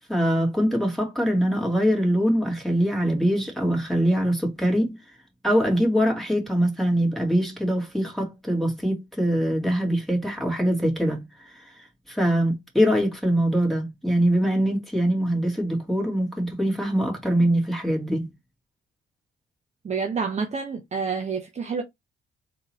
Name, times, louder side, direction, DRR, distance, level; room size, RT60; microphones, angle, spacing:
voice 1, 0.1-5.0 5.4-18.3, equal, ahead, 2.1 m, -23 dB
voice 2, 19.8-21.8, right 5 dB, 35° right, 0.9 m, -28 dB
3.7 x 3.0 x 4.3 m
cardioid pair, 90°, 20 cm